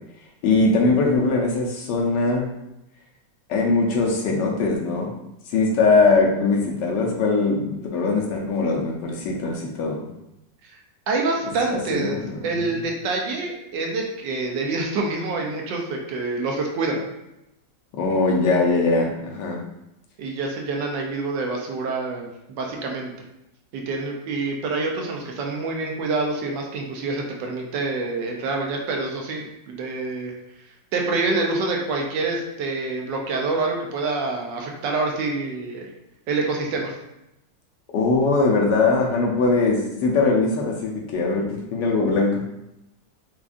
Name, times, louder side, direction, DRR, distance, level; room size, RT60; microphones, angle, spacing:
voice 1, 0.4-2.4 3.5-5.1 5.5-10.1 11.7-12.7 17.9-19.6 37.9-42.5, left 3 dB, 75° left, 0 dB, 1.3 m, -21 dB
voice 2, 11.1-12.2 12.4-17.1 20.2-23.1 23.7-30.3 30.9-35.9 36.3-37.0, right 3 dB, 80° right, 1 dB, 1.2 m, -26 dB
4.8 x 2.3 x 2.5 m, 0.89 s
omnidirectional pair, 2.0 m